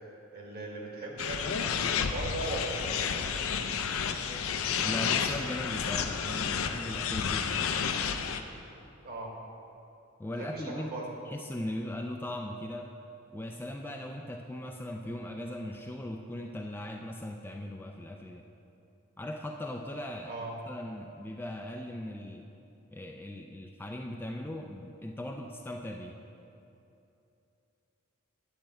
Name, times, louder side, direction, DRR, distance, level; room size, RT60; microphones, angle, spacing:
voice 1, 0.3-3.6 9.0-9.3 10.4-11.1 20.3-20.5, right 2 dB, 45° right, -2 dB, 1.6 m, -39 dB
sound 1, 1.2-8.4, left 7 dB, 65° left, 0.5 m, -31 dB
voice 2, 4.8-7.9 10.2-10.9 11.3-12.9 13.3-18.4 19.2-20.4 20.7-22.5 22.9-26.2, left 1 dB, 10° left, 2 dB, 0.3 m, -39 dB
9.1 x 4.3 x 7.5 m, 2.8 s
head